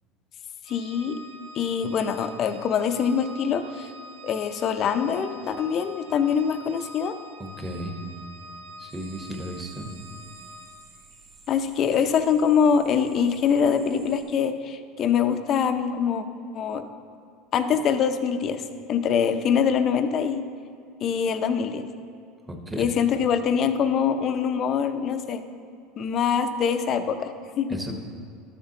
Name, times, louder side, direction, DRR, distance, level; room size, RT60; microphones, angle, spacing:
Organ, 0.6-11.0, equal, 65° right, 0.8 m, -45 dB
voice 1, 0.7-1.2 1.5-3.9 4.2-7.1 11.5-16.2 16.5-16.8 17.5-20.4 21.0-21.8 22.8-25.4 26.0-27.8, left 7 dB, 45° left, 8 dB, 0.6 m, -24 dB
voice 2, 7.4-8.0 8.8-9.9 22.5-22.9 27.7-27.9, equal, 10° right, 3 dB, 1.1 m, -34 dB
sound 1, 8.9-14.2, right 4 dB, 35° right, 1.9 m, -52 dB
12.5 x 6.8 x 2.9 m, 2.4 s
supercardioid pair, 120°, 0 cm